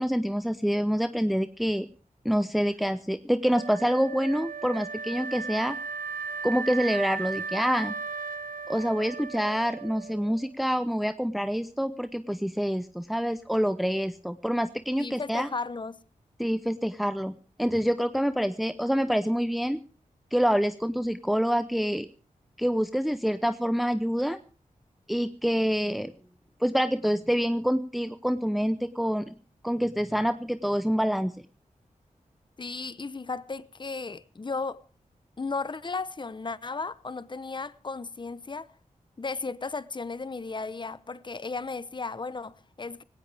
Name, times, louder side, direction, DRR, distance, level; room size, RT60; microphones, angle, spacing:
voice 1, 0.0-1.9 2.2-5.7 6.4-7.9 8.7-15.5 16.4-19.8 20.3-22.1 22.6-24.4 25.1-26.1 26.6-29.3 29.6-31.3, equal, ahead, 0.8 m, -26 dB
Wind instrument woodwind instrument, 3.5-10.5, right 5 dB, 85° right, 0.8 m, -36 dB
voice 2, 15.0-16.0 32.6-34.8 35.4-38.7 39.2-43.0, left 4 dB, 35° left, 0.8 m, -35 dB
18.5 x 17.5 x 3.5 m
wide cardioid pair, 70°, 14 cm